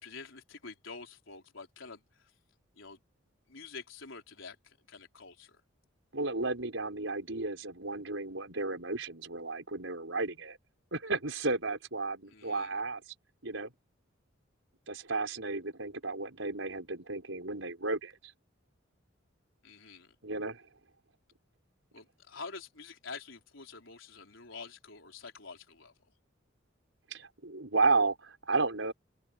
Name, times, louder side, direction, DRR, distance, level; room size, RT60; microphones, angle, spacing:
voice 1, 0.0-2.3 2.8-3.0 3.5-5.6 12.3-12.7 19.6-20.2 21.9-25.9, left 4 dB, 80° left, 4.1 m, -47 dB
voice 2, 6.1-10.6 10.9-13.0 13.4-13.7 14.9-18.3 20.2-20.6 27.1-28.9, right 3 dB, 75° right, 5.4 m, -33 dB
open air
head